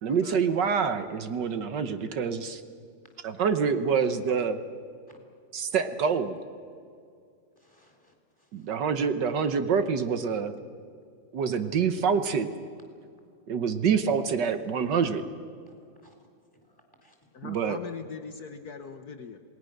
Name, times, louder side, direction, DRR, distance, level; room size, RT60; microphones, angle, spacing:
voice 1, 0.0-2.6 3.2-4.6 5.5-6.4 8.5-10.5 11.3-12.5 13.5-15.2 17.4-17.8, right 6 dB, 65° right, 9 dB, 1.7 m, -26 dB
voice 2, 7.6-8.7 15.7-16.2 16.6-17.2, left 1 dB, 10° left, 2 dB, 3.9 m, -62 dB
voice 3, 9.3-9.7 17.3-19.4, left 6 dB, 60° left, 7 dB, 1.4 m, -41 dB
27.5 x 19.5 x 6.6 m, 2.3 s
omnidirectional pair, 2.1 m